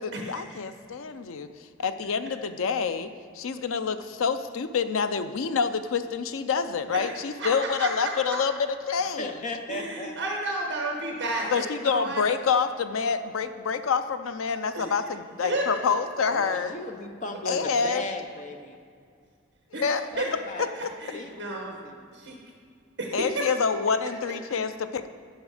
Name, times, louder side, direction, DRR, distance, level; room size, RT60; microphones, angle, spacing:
voice 1, 0.0-1.5 1.8-3.1 3.3-9.3 11.5-16.7 17.5-18.0 19.7-20.1 23.1-25.1, left 5 dB, 85° left, 10 dB, 0.5 m, -27 dB
voice 2, 7.8-8.4 9.7-12.2 14.7-14.9 15.4-15.6 19.7-19.9 20.2-20.3 20.7-21.8 22.1-22.4 23.0-23.4, right 2 dB, 65° right, 0 dB, 1.0 m, -32 dB
voice 3, 9.2-10.2 16.3-18.8 20.1-20.7 21.1-22.1, left 2 dB, 35° left, 4 dB, 0.7 m, -36 dB
11.0 x 5.3 x 4.9 m, 2.3 s
head